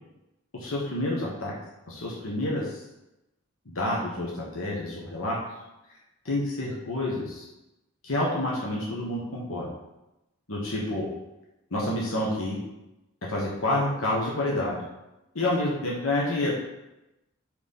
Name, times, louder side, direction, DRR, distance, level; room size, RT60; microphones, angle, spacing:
voice 1, 0.5-1.5 1.9-2.8 3.7-5.4 6.2-7.4 8.0-9.7 10.5-11.0 11.7-12.6 13.3-14.8 15.3-16.5, left 1 dB, 85° left, -4 dB, 1.3 m, -28 dB
4.6 x 4.5 x 5.5 m, 0.93 s
head